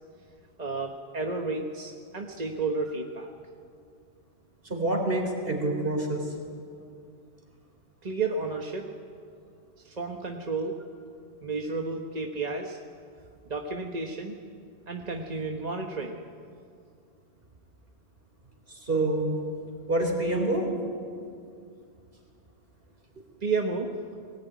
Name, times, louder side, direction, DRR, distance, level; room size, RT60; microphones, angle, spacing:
voice 1, 0.6-3.3 8.0-8.9 9.8-10.8 11.4-12.8 13.4-14.3 14.9-16.2 23.4-23.9, right 3 dB, 40° right, 2 dB, 1.3 m, -32 dB
voice 2, 4.6-6.3 18.7-19.4 19.9-20.7, right 2 dB, 55° right, 2 dB, 4.1 m, -27 dB
22.0 x 18.0 x 9.3 m, 2.3 s
omnidirectional pair, 1.2 m